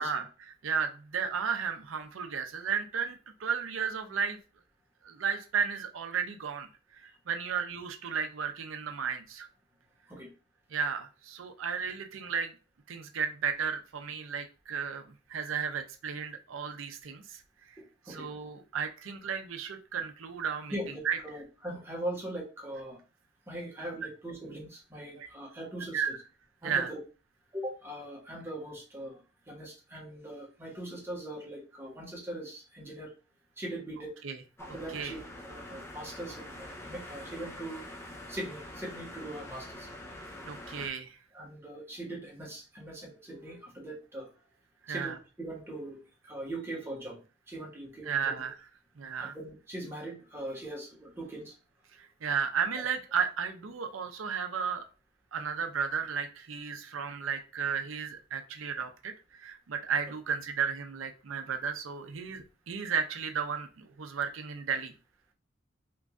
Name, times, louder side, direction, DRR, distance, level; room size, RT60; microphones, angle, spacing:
voice 1, 0.0-4.4 5.0-6.7 6.9-9.5 10.7-12.5 12.9-15.0 15.3-17.4 18.1-20.7 21.0-21.2 25.2-25.3 25.9-26.1 26.6-26.9 34.2-34.4 34.9-35.1 40.4-41.2 44.9-45.1 48.0-48.5 49.0-49.3 52.0-54.8 55.3-59.1 59.4-64.9, right 6 dB, 75° right, 7 dB, 0.5 m, -33 dB
voice 2, 20.7-23.0 23.5-26.2 26.6-27.0 27.5-33.1 33.6-34.1 34.6-37.8 38.3-39.9 41.3-44.3 44.9-47.2 47.5-48.4 49.2-51.5, right 1 dB, 10° right, -1 dB, 1.1 m, -41 dB
sound 1, 34.6-40.9, left 1 dB, 15° left, 0.6 m, -45 dB
3.0 x 2.5 x 3.5 m, 0.34 s
head